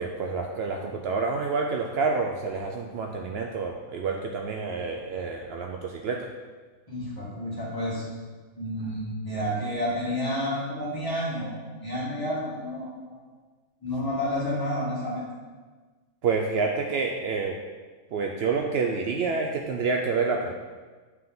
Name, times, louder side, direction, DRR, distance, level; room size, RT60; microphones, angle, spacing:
voice 1, 0.0-6.3 16.2-17.5 18.1-20.5, right 4 dB, 85° right, 2 dB, 0.5 m, -28 dB
voice 2, 6.9-8.1 8.6-11.5 11.8-13.2 13.8-15.2, equal, 15° left, -8 dB, 1.8 m, -30 dB
8.4 x 3.7 x 3.8 m, 1.4 s
omnidirectional pair, 1.6 m